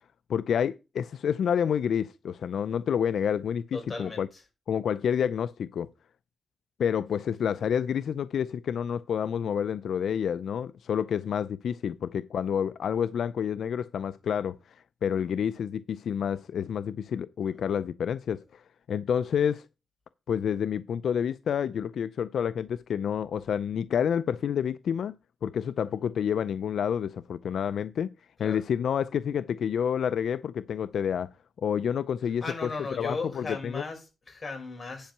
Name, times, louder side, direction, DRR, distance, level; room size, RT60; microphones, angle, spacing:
voice 1, 0.3-4.3 4.7-5.9 6.8-14.8 15.0-18.6 18.9-19.6 20.3-25.2 25.4-28.1 28.4-31.3 31.6-32.7 33.0-33.8, left 8 dB, 85° left, 0.4 m, -29 dB
voice 2, 3.7-4.4 17.4-17.6 26.0-26.1 28.4-28.6 32.4-35.1, left 3 dB, 40° left, 4.8 m, -37 dB
10.5 x 5.3 x 5.9 m
cardioid pair, 90°, 0 cm